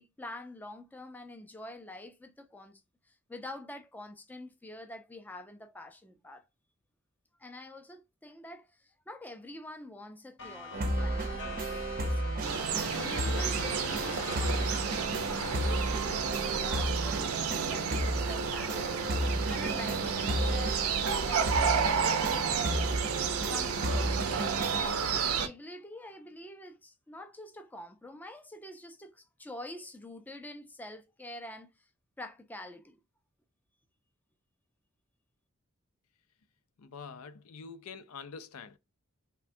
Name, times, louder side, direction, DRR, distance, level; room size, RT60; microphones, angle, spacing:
voice 1, 0.0-2.8 3.1-6.4 7.4-12.6 13.0-24.2 24.6-31.9 32.2-33.0, left 1 dB, 10° left, 0.4 m, -46 dB
sound 1, 10.4-16.6, left 3 dB, 55° left, 0.8 m, -44 dB
sound 2, 10.7-24.8, right 1 dB, 40° right, 0.5 m, -33 dB
sound 3, 12.4-25.5, right 6 dB, 85° right, 0.6 m, -31 dB
voice 2, 36.8-38.8, left 5 dB, 85° left, 0.5 m, -45 dB
3.4 x 2.2 x 2.6 m
head